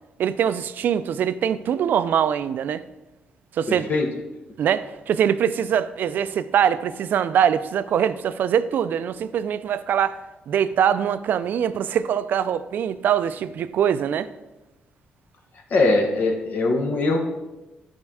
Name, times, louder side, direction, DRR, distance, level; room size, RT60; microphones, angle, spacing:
voice 1, 0.2-2.8 3.5-3.9 4.6-10.2 10.5-14.3, right 8 dB, 65° right, 0.5 m, -23 dB
voice 2, 3.7-4.1 15.7-17.2, left 2 dB, 60° left, 1.6 m, -21 dB
11.0 x 4.5 x 6.3 m
cardioid pair, 125°, 3 cm